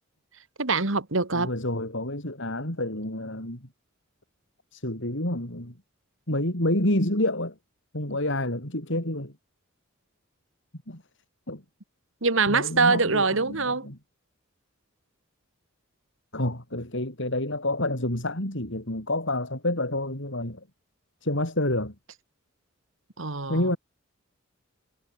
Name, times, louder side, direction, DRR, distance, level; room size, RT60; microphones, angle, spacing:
voice 1, 0.6-1.5 12.2-13.9 23.2-23.6, right 4 dB, 65° right, 2.1 m, -24 dB
voice 2, 1.3-3.7 4.7-5.7 6.3-7.6 7.9-9.3 10.9-11.0 11.5-11.6 12.5-14.0 16.3-20.6 21.2-21.9 23.5-23.8, left 1 dB, 60° left, 6.5 m, -28 dB
head